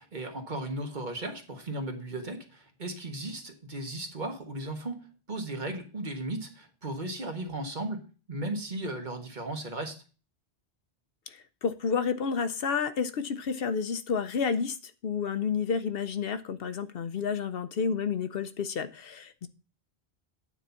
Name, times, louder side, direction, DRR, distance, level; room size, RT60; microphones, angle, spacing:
voice 1, 0.0-8.0 8.3-10.0, right 1 dB, 50° right, 4 dB, 1.5 m, -36 dB
voice 2, 11.6-14.8 15.0-19.5, left 6 dB, 70° left, 11 dB, 0.9 m, -30 dB
9.2 x 4.0 x 6.9 m, 0.36 s
omnidirectional pair, 1.0 m